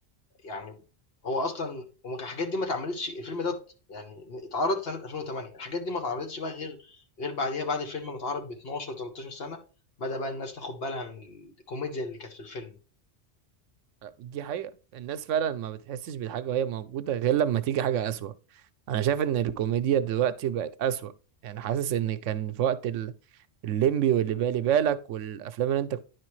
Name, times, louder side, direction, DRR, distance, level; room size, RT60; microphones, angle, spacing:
voice 1, 0.4-0.8 1.2-3.6 3.9-9.6 10.0-12.8, left 2 dB, 55° left, 1.2 m, -33 dB
voice 2, 14.0-18.3 18.9-21.1 21.4-23.1 23.6-26.0, right 10 dB, 85° right, 0.9 m, -27 dB
10.0 x 4.7 x 3.1 m
omnidirectional pair, 1.2 m